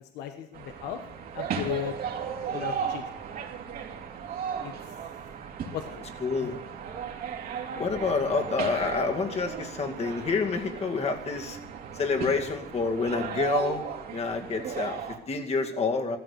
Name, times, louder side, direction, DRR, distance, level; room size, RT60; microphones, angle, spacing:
voice 1, 0.1-1.0 1.3-2.0 2.5-3.1 4.6-4.7 5.7-6.1 6.4-6.5, left 10 dB, 85° left, 7 dB, 1.2 m, -35 dB
sound 1, 0.5-15.2, right 7 dB, 60° right, 2.5 m, -36 dB
voice 2, 6.2-6.6 7.8-11.6 11.9-13.8 14.1-16.2, left 4 dB, 40° left, 4 dB, 2.3 m, -28 dB
15.0 x 13.5 x 6.8 m, 0.84 s
cardioid pair, 110°, 17 cm